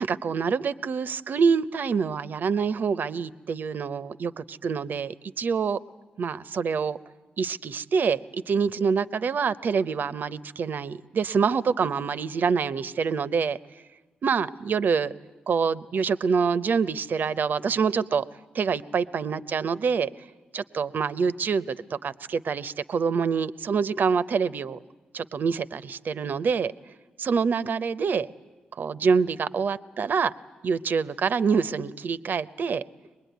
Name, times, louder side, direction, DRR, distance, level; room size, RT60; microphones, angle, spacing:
voice 1, 0.0-5.8 6.2-7.0 7.4-13.6 14.2-15.1 15.5-18.2 18.5-20.1 20.5-24.8 25.1-26.7 27.2-28.3 28.8-30.3 30.6-32.8, right 5 dB, 60° right, 15 dB, 0.7 m, -26 dB
23.5 x 20.5 x 9.3 m, 1.2 s
supercardioid pair, 45°, 4 cm